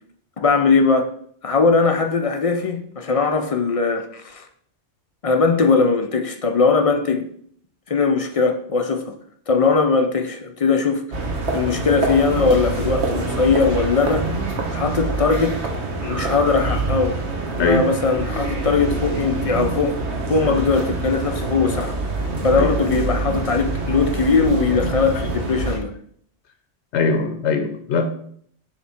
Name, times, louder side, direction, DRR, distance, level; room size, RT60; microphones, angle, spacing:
voice 1, 0.4-1.1 1.4-4.5 5.2-7.2 7.9-9.1 9.5-11.0 11.5-14.3 14.7-15.6 16.0-17.2 17.6-20.0 20.3-21.9 22.4-25.9, left 4 dB, 50° left, 0.4 m, -20 dB
sound 1, 11.1-25.8, right 3 dB, 70° right, 1.4 m, -25 dB
voice 2, 26.9-28.1, left 4 dB, 75° left, 0.9 m, -21 dB
7.3 x 3.3 x 4.3 m
omnidirectional pair, 1.2 m